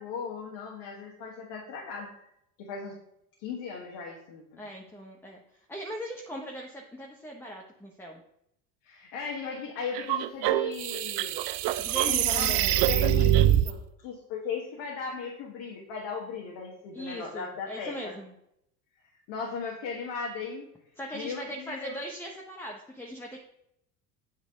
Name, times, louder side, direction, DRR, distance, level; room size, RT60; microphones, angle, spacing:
voice 1, 0.0-2.2 2.6-3.0 3.4-4.6 8.8-11.4 12.1-18.1 19.3-20.6 21.1-22.0, left 5 dB, 55° left, -2 dB, 1.5 m, -37 dB
voice 2, 4.6-5.4 5.7-8.2 11.8-12.7 16.9-18.3 21.0-23.4, equal, 5° left, 0 dB, 0.8 m, -39 dB
sound 1, 9.9-13.7, right 12 dB, 50° right, 0.5 m, -24 dB
8.7 x 3.3 x 3.7 m, 0.77 s
hypercardioid pair, 85°, 50 cm